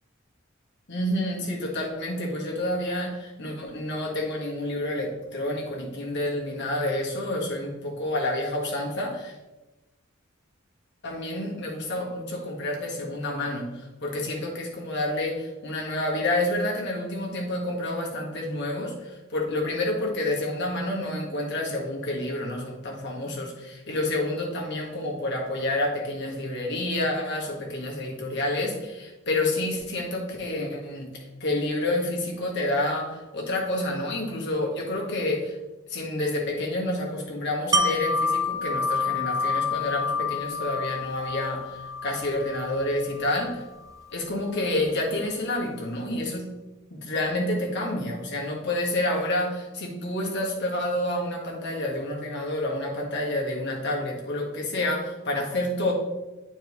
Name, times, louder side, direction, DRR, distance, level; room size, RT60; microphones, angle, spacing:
voice 1, 0.9-9.3 11.0-35.6 35.9-43.6 44.1-46.5 46.9-55.9, left 1 dB, 55° left, -1 dB, 1.6 m, -29 dB
Wind chime, 37.7-43.5 43.9-44.0, left 3 dB, 15° right, 0.4 m, -28 dB
9.1 x 4.4 x 3.2 m, 1.1 s
head